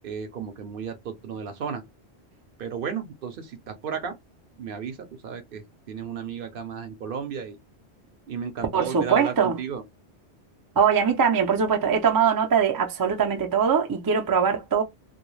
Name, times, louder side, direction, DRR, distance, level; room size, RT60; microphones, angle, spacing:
voice 1, 0.0-1.8 2.6-4.1 4.6-7.6 8.3-9.8, right 7 dB, 60° right, 0.7 m, -33 dB
voice 2, 8.7-9.6 10.8-14.8, right 6 dB, 35° right, 0.3 m, -22 dB
2.2 x 2.2 x 3.1 m
omnidirectional pair, 1.1 m